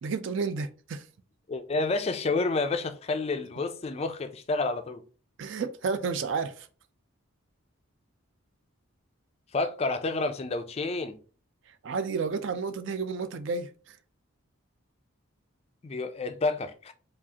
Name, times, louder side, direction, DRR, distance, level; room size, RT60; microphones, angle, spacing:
voice 1, 0.0-1.1 5.4-6.7 11.8-14.0, right 5 dB, 55° right, 0.4 m, -31 dB
voice 2, 1.5-5.0 9.5-11.2 15.8-16.9, left 3 dB, 30° left, 0.3 m, -29 dB
4.8 x 2.4 x 2.8 m
head